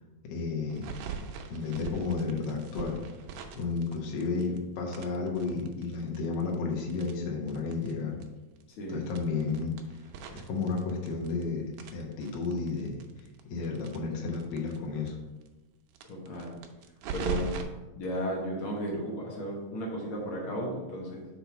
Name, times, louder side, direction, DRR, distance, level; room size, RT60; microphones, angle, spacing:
voice 1, 0.3-0.9 1.5-3.0 3.5-8.2 8.9-9.7 10.3-13.0 13.5-15.2, left 4 dB, 65° left, -1 dB, 1.6 m, -32 dB
sound 1, 0.7-4.6 4.9-7.9 8.2-8.3 8.6-8.7 9.1-11.4 11.7-14.8 15.1-15.2 15.4-15.5 15.9-17.6, right 6 dB, 75° right, 1.9 m, -40 dB
voice 2, 16.1-16.6 17.1-17.6 17.9-21.3, equal, 90° left, -2 dB, 1.1 m, -34 dB
5.7 x 4.3 x 5.9 m, 1.1 s
omnidirectional pair, 4.1 m